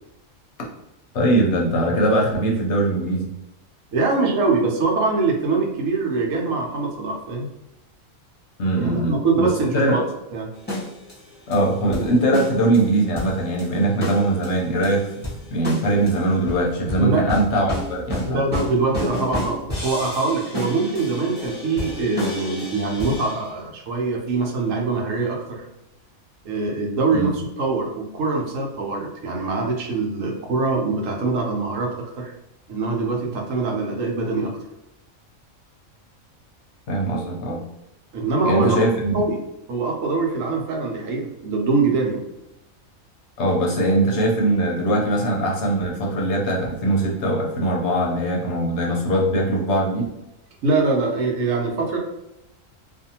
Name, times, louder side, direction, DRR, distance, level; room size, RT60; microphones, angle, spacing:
voice 1, 1.1-3.3 8.6-9.5 9.7-10.0 11.5-15.1 15.5-18.4 27.1-27.4 36.9-37.6 38.4-39.2 43.4-50.0, right 1 dB, 60° left, -1 dB, 0.9 m, -21 dB
voice 2, 3.9-7.5 8.7-10.0 10.3-10.5 17.0-17.2 18.2-25.6 26.4-32.3 32.7-34.5 38.1-39.4 39.7-42.2 50.6-52.0, right 3 dB, 75° right, 0 dB, 1.0 m, -23 dB
sound 1, 10.5-23.5 24.3-24.4, left 1 dB, 10° left, 0.9 m, -32 dB
2.6 x 2.4 x 2.7 m, 0.88 s
omnidirectional pair, 1.4 m